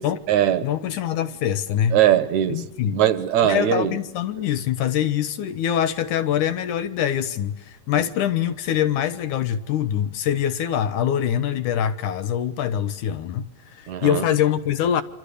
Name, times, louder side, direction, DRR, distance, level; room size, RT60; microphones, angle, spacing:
voice 1, 0.0-0.7 1.9-2.6 2.9-4.0 4.4-4.5 8.0-8.1 13.9-14.2, right 11 dB, 65° right, 2.3 m, -21 dB
voice 2, 0.6-2.0 2.5-3.0 3.4-13.5 13.7-15.0, left 10 dB, 70° left, 2.4 m, -24 dB
27.5 x 26.5 x 6.8 m
omnidirectional pair, 4.1 m